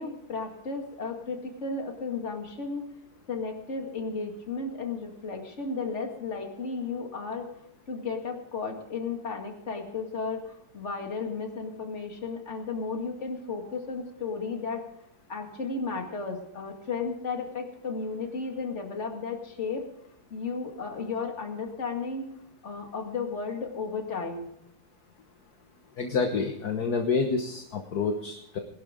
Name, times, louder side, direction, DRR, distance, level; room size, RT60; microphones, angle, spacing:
voice 1, 0.0-2.9 3.3-7.5 7.9-14.8 15.3-19.9 20.3-22.3 22.6-24.5, left 4 dB, 40° left, 3 dB, 2.4 m, -34 dB
voice 2, 26.0-28.6, left 4 dB, 60° left, 4 dB, 1.7 m, -28 dB
20.5 x 12.0 x 3.7 m, 0.74 s
omnidirectional pair, 2.0 m